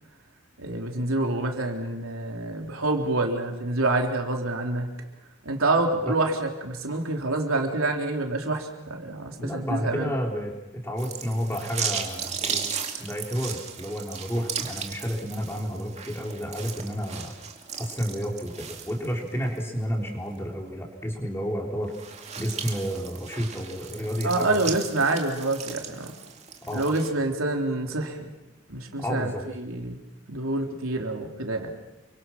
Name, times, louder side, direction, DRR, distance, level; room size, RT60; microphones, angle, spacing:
voice 1, 0.6-4.9 5.4-10.1 24.2-26.1 26.7-28.3 28.7-30.0 30.3-31.7, right 2 dB, 85° right, 2 dB, 3.7 m, -27 dB
voice 2, 9.4-12.6 13.0-17.3 17.8-21.9 22.4-24.7 26.7-26.9 29.0-29.4, equal, 10° left, 0 dB, 4.3 m, -31 dB
sound 1, 11.0-19.6 20.0-20.1 21.8-27.1, right 7 dB, 30° right, 2.4 m, -36 dB
29.5 x 24.5 x 6.1 m, 0.99 s
head